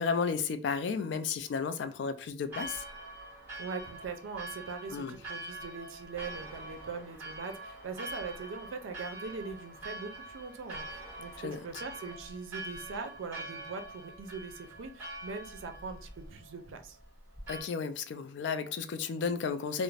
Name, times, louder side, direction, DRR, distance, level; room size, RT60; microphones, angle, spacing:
voice 1, 0.0-2.8 4.9-5.1 11.4-11.6 17.5-19.8, left 5 dB, 65° left, 0.3 m, -33 dB
Church bell, 2.5-17.6, right 1 dB, 10° right, 1.1 m, -45 dB
voice 2, 3.6-17.0, right 4 dB, 85° right, 0.4 m, -41 dB
2.4 x 2.0 x 3.1 m
head